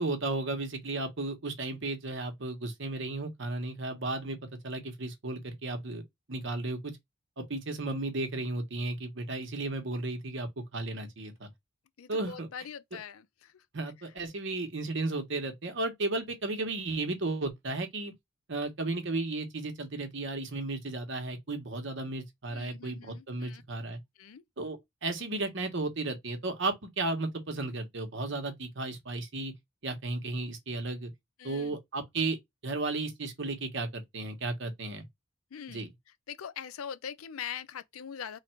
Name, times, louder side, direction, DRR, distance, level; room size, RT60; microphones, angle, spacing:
voice 1, 0.0-4.4 4.6-6.0 6.3-7.0 7.4-11.5 12.1-12.5 13.7-18.1 18.5-24.0 24.6-29.5 29.8-31.1 31.4-32.4 32.6-35.0 35.7-35.9, right 2 dB, 60° right, 1.0 m, -34 dB
voice 2, 12.0-13.6 22.5-23.6 24.2-24.4 31.4-31.8 35.5-35.9 36.3-38.4, left 8 dB, 85° left, 0.5 m, -42 dB
3.2 x 2.5 x 4.4 m
head